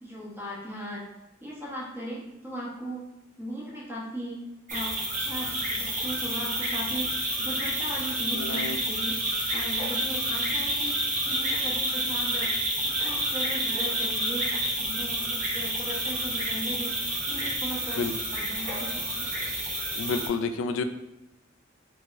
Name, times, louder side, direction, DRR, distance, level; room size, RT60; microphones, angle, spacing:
voice 1, 0.0-1.0 1.4-3.0 3.4-4.4 4.7-7.1 7.4-9.2 9.5-10.9 11.2-12.5 12.8-19.3, equal, 10° right, -7 dB, 1.0 m, -38 dB
sound 1, 4.7-20.3, right 1 dB, 40° right, 0.8 m, -29 dB
voice 2, 8.3-8.8 18.0-18.1 19.9-20.8, left 4 dB, 75° left, 9 dB, 0.3 m, -29 dB
4.7 x 2.2 x 2.5 m, 0.92 s
head